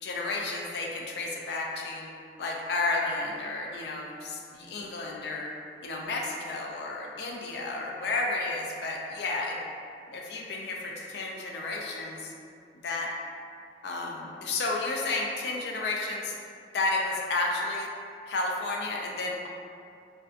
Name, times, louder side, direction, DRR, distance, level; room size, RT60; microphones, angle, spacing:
voice 1, 0.0-2.1 2.4-5.5 5.8-9.6 10.1-12.3 12.8-13.1 13.8-16.3 16.7-17.9 18.3-19.5, left 3 dB, 65° left, -1 dB, 0.3 m, -32 dB
2.3 x 2.2 x 2.4 m, 2.4 s
head